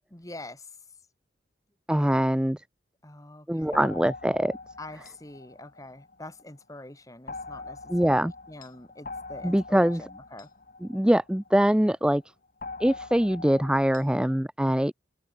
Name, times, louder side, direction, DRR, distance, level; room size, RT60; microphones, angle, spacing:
voice 1, 0.1-0.6 3.0-3.8 4.8-10.5, left 1 dB, 20° left, 1.8 m, -45 dB
voice 2, 1.9-2.6 3.5-4.6 7.9-8.3 9.4-10.1 10.8-12.2 12.8-14.9, equal, 5° right, 0.4 m, -23 dB
sound 1, 3.7-6.5 7.3-11.8 12.6-14.4, left 3 dB, 50° left, 1.6 m, -43 dB
open air
head